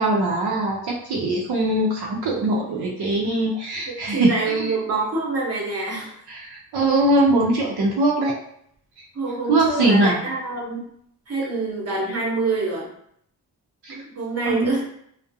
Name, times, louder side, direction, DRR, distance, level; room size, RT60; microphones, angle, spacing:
voice 1, 0.0-4.7 6.3-8.4 9.5-10.2 13.8-14.0 14.5-14.8, right 2 dB, 75° right, -2 dB, 0.6 m, -21 dB
voice 2, 4.1-6.1 9.1-10.9 11.3-12.9 13.9-14.8, right 3 dB, 40° right, -3 dB, 0.8 m, -26 dB
2.4 x 2.0 x 2.6 m, 0.68 s
wide cardioid pair, 115°, 39 cm